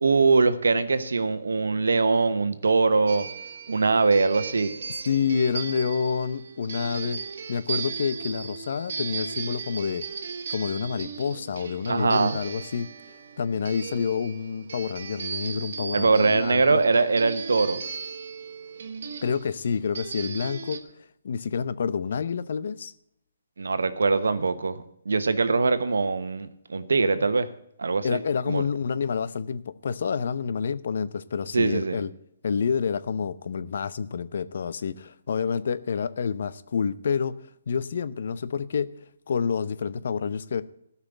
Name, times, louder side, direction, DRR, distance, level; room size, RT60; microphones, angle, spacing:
voice 1, 0.0-3.3 3.7-4.7 11.9-12.4 15.9-17.8 23.6-24.8 25.1-27.5 27.8-28.2 28.5-28.6 31.5-32.0, right 4 dB, 85° right, 12 dB, 1.1 m, -22 dB
sound 1, 3.1-20.8, right 5 dB, 65° right, 1.2 m, -37 dB
voice 2, 4.9-7.2 7.5-10.1 10.5-12.9 13.4-16.8 19.2-20.8 21.2-22.9 28.0-32.1 32.4-37.3 37.7-38.9 39.3-40.6, left 6 dB, 65° left, 15 dB, 0.7 m, -28 dB
13.5 x 5.7 x 7.8 m, 0.76 s
hypercardioid pair, 145°, 0 cm